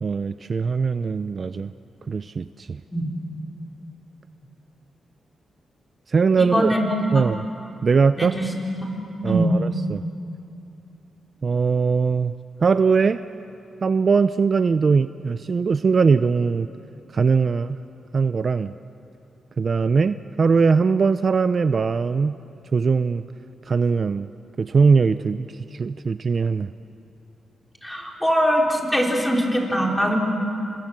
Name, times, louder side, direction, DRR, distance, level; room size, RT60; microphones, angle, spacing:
voice 1, 0.0-1.7 2.1-2.8 6.1-6.7 7.1-7.5 7.8-8.3 9.2-10.0 11.4-12.3 12.6-13.2 13.8-16.7 17.1-17.8 18.1-18.7 19.6-22.4 22.7-23.2 23.7-24.3 24.6-26.7, right 5 dB, 45° right, 12 dB, 0.6 m, -21 dB
voice 2, 6.4-6.8 8.2-8.4 8.8-8.9 9.2-9.5 27.8-30.2, equal, 10° left, 0 dB, 4.6 m, -22 dB
29.5 x 26.5 x 7.6 m, 2.7 s
cardioid pair, 90°, 0 cm